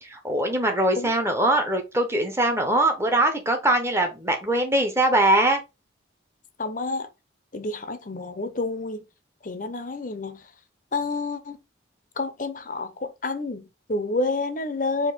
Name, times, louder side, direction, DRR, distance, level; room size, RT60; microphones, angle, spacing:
voice 1, 0.0-5.6, right 1 dB, 15° right, 0.9 m, -22 dB
voice 2, 6.6-7.1 7.5-9.0 9.4-10.5 10.9-11.6 12.2-15.1, left 3 dB, 40° left, 0.7 m, -29 dB
4.5 x 2.8 x 4.0 m
head